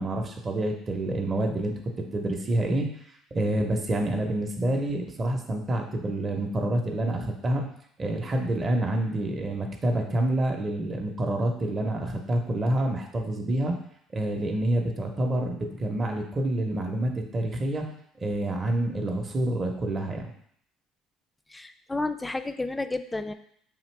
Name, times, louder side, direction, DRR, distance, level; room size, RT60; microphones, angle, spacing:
voice 1, 0.0-2.9 3.3-7.6 8.0-13.8 14.1-17.9 18.2-20.3, right 1 dB, 35° right, 2 dB, 0.7 m, -27 dB
voice 2, 21.5-23.3, left 2 dB, 15° left, 9 dB, 0.3 m, -31 dB
5.0 x 2.8 x 3.2 m, 0.68 s
hypercardioid pair, 65°, 0 cm